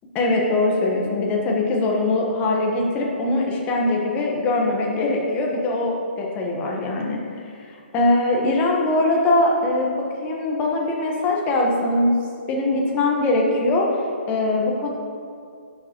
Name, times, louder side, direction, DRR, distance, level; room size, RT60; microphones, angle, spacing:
voice 1, 0.1-7.2 7.7-9.9 10.2-12.2 12.5-13.9 14.3-14.9, left 2 dB, 25° left, -1 dB, 1.2 m, -21 dB
10.0 x 6.7 x 3.0 m, 2.3 s
hypercardioid pair, 140°, 6 cm